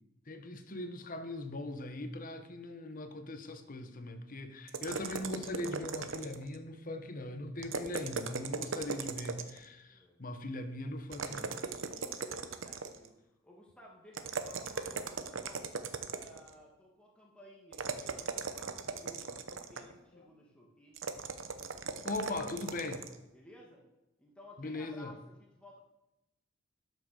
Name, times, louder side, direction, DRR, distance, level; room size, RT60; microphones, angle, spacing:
voice 1, 0.3-11.5 20.1-20.2 22.0-23.0 24.6-25.1, left 2 dB, 45° left, 8 dB, 1.0 m, -40 dB
sound 1, 4.7-6.6 7.6-9.7 11.1-13.1 14.1-16.5 17.7-20.0 21.0-23.2, right 5 dB, 80° right, 0.9 m, -38 dB
voice 2, 9.9-10.2 11.8-13.2 13.4-15.7 16.1-21.0 23.3-23.8 24.2-25.8, left 1 dB, 5° left, -3 dB, 1.8 m, -56 dB
12.0 x 6.3 x 6.5 m, 0.94 s
head